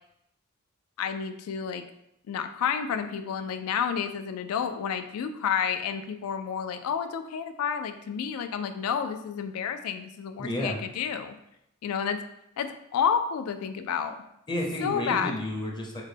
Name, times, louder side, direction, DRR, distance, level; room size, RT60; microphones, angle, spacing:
voice 1, 1.0-1.8 2.3-11.3 11.8-12.2 12.6-14.1 14.8-15.4, left 7 dB, 90° left, 8 dB, 0.3 m, -30 dB
voice 2, 10.4-10.8 14.5-16.0, left 1 dB, 20° left, 0 dB, 0.5 m, -31 dB
3.8 x 2.1 x 3.3 m, 0.80 s
head